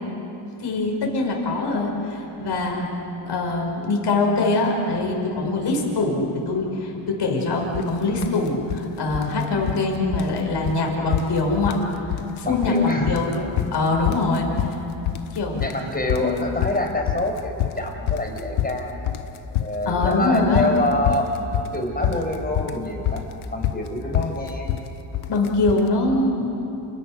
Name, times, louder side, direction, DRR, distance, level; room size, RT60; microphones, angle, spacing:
voice 1, 0.6-2.9 3.3-11.8 12.4-14.5 15.3-15.6 16.2-16.4 19.9-20.7 25.3-26.5, left 3 dB, 55° left, 0 dB, 6.0 m, -23 dB
sound 1, 7.7-7.9 8.2-8.8 9.1-9.9 10.1-10.4 10.6-10.8 11.1-11.9 12.1-12.8 13.1-25.9, left 12 dB, 80° left, 1.2 m, -27 dB
voice 2, 12.4-13.2 15.6-19.1 19.6-21.3 21.7-23.3 23.5-24.7, left 1 dB, 20° left, 2 dB, 5.6 m, -26 dB
29.0 x 28.5 x 6.7 m, 2.9 s
cardioid pair, 100°, 48 cm